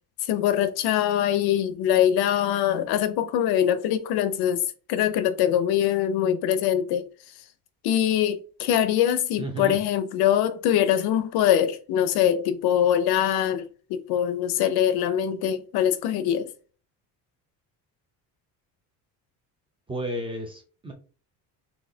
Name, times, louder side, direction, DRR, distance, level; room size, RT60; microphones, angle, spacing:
voice 1, 0.3-4.6 4.9-7.1 7.8-13.6 13.9-16.5, left 10 dB, 70° left, 0.6 m, -23 dB
voice 2, 9.4-9.8 19.9-20.9, right 1 dB, 15° right, 0.5 m, -32 dB
4.1 x 2.8 x 2.7 m
cardioid pair, 175°, 40 cm